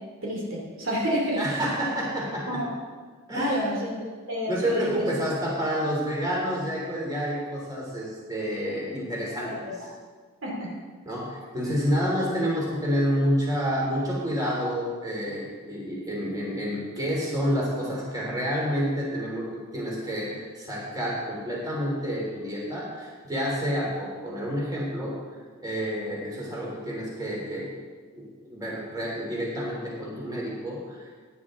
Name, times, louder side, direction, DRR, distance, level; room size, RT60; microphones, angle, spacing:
voice 1, 0.2-1.4 2.5-2.7 3.3-5.1 9.4-9.7 10.4-10.7, equal, 60° right, -3 dB, 2.6 m, -29 dB
voice 2, 1.4-2.6 3.3-3.7 4.5-9.9 11.0-25.1 25.6-27.7 28.1-31.2, equal, 15° right, -4 dB, 3.1 m, -29 dB
16.0 x 9.9 x 3.7 m, 1.5 s
head